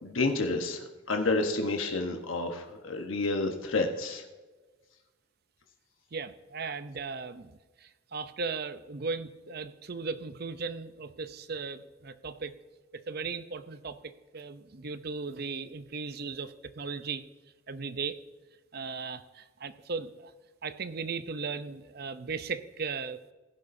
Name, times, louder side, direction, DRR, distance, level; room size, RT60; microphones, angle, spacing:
voice 1, 0.0-4.2, left 3 dB, 80° left, 4 dB, 1.1 m, -30 dB
voice 2, 6.1-7.5 7.8-12.5 12.9-17.2 17.7-18.2 18.7-20.3 20.6-23.2, right 4 dB, 50° right, 12 dB, 0.6 m, -37 dB
16.0 x 11.0 x 2.7 m, 1.2 s
head